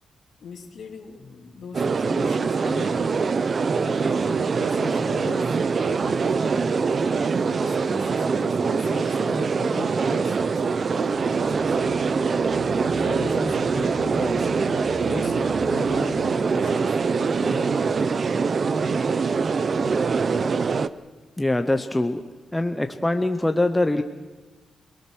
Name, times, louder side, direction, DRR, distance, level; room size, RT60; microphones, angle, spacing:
voice 1, 0.4-3.3 3.8-5.6 5.8-6.8 7.5-11.9 12.8-14.5 15.0-18.3 21.6-21.7, left 5 dB, 55° left, 3 dB, 2.7 m, -40 dB
sound 1, 1.2-2.1 3.7-8.2 8.6-9.0 10.5-16.8, left 5 dB, 30° left, 1.9 m, -44 dB
sound 2, 1.7-20.9, right 5 dB, 35° right, 0.6 m, -23 dB
voice 2, 21.4-22.2 22.5-24.0, left 2 dB, 10° left, 6 dB, 0.7 m, -23 dB
26.5 x 20.0 x 6.2 m, 1.2 s
wide cardioid pair, 170°, 0 cm